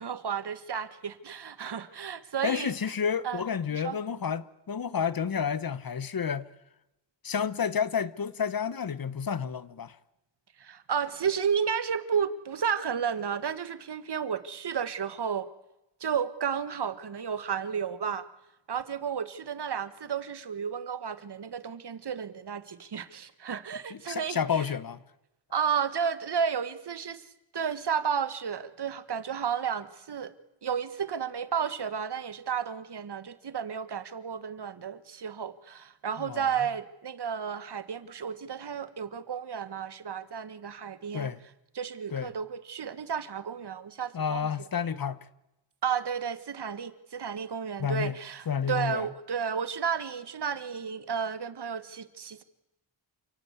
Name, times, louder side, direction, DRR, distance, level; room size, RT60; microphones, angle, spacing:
voice 1, 0.0-2.7 3.2-3.4 3.7-4.0 10.6-15.5 16.0-18.3 18.7-24.4 25.5-27.2 27.5-30.3 30.6-41.3 41.7-44.5 45.8-52.4, right 7 dB, 60° right, 1.7 m, -32 dB
voice 2, 2.4-6.5 7.2-10.0 23.9-25.0 36.2-36.5 41.1-41.4 42.1-42.3 44.1-45.3 47.8-48.2 48.5-49.1, left 7 dB, 50° left, 1.1 m, -30 dB
28.5 x 18.0 x 8.3 m
wide cardioid pair, 95°, 46 cm